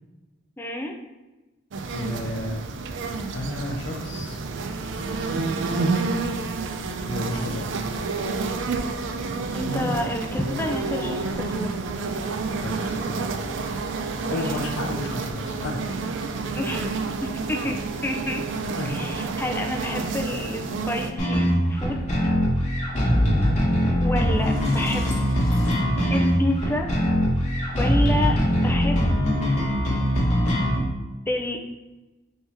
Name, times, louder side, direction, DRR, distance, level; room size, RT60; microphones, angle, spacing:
voice 1, 0.6-1.0 9.5-11.8 14.2-14.6 16.5-17.8 18.0-18.4 18.8-22.0 24.0-25.1 26.1-26.9 27.8-29.0 31.3-31.6, left 1 dB, 10° left, 2 dB, 0.4 m, -29 dB
sound 1, 1.7-21.1, right 3 dB, 70° right, 0.4 m, -29 dB
voice 2, 1.9-2.7 3.3-4.4 7.0-7.8 12.6-13.3 14.2-15.8 18.8-18.9, left 1 dB, 70° left, 2 dB, 0.6 m, -32 dB
sound 2, 21.2-30.8, equal, 35° left, 1.1 m, -22 dB
Sliding door, 23.9-24.0 24.3-26.6, left 1 dB, 90° left, 1.0 m, -37 dB
3.7 x 2.8 x 4.4 m, 1.1 s
head